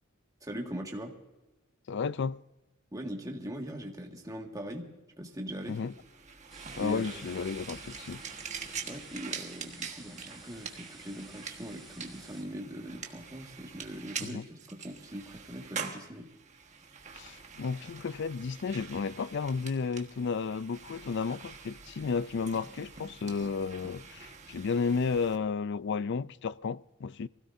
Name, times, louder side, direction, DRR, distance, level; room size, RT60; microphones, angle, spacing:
voice 1, 0.4-1.1 2.9-4.9 5.2-5.9 6.7-7.1 8.8-14.4 14.7-16.3, equal, 15° right, 1.9 m, -41 dB
voice 2, 1.9-2.4 5.7-5.9 6.7-8.2 14.2-14.5 17.1-27.3, left 5 dB, 55° left, 0.4 m, -33 dB
sound 1, 5.6-25.4, right 6 dB, 35° right, 1.4 m, -45 dB
sound 2, 6.5-12.4, right 2 dB, ahead, 5.2 m, -52 dB
24.0 x 16.5 x 2.7 m
head